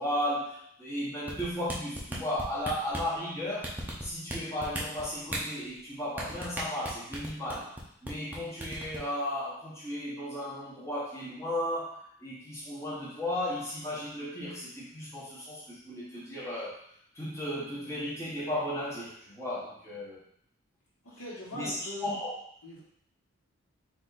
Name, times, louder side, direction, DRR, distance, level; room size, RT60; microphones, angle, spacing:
voice 1, 0.0-7.8 8.0-16.8 17.1-20.2 21.5-22.4, left 1 dB, 10° left, -9 dB, 1.3 m, -35 dB
sound 1, 1.3-3.1 3.6-4.4 4.6-5.4 6.2-7.8 8.1-8.4 8.6-9.0, right 1 dB, 10° right, 0.6 m, -35 dB
voice 2, 21.0-22.1 22.6-22.8, left 1 dB, 80° left, -5 dB, 1.4 m, -41 dB
4.0 x 2.8 x 4.0 m, 0.67 s
head